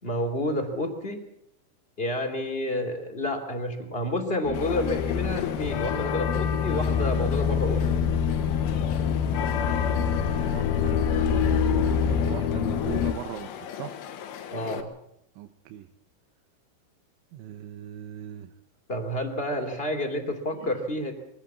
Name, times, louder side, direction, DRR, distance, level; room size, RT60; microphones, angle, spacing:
voice 1, 0.0-1.2 2.0-8.1 14.5-14.9 18.9-21.1, left 1 dB, 20° left, 4 dB, 1.7 m, -29 dB
sound 1, 4.5-14.8, left 9 dB, 85° left, 4.0 m, -36 dB
sound 2, 4.5-13.1, left 7 dB, 70° left, 2.6 m, -26 dB
voice 2, 10.3-14.0 15.4-15.9 17.3-18.5 20.6-20.8, right 13 dB, 80° right, 7 dB, 3.2 m, -39 dB
23.0 x 16.5 x 7.3 m, 0.80 s
omnidirectional pair, 5.4 m